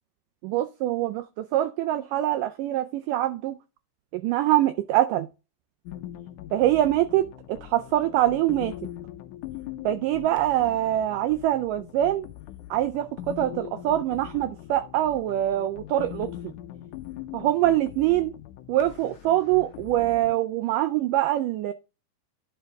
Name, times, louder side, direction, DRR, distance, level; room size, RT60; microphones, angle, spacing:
voice 1, 0.4-3.6 4.1-5.3 6.5-8.7 9.8-12.3 12.7-16.5 17.3-18.3 18.7-21.7, right 13 dB, 85° right, 1.9 m, -24 dB
sound 1, 5.9-20.3, left 13 dB, 80° left, 1.8 m, -41 dB
11.0 x 4.5 x 3.5 m
omnidirectional pair, 4.4 m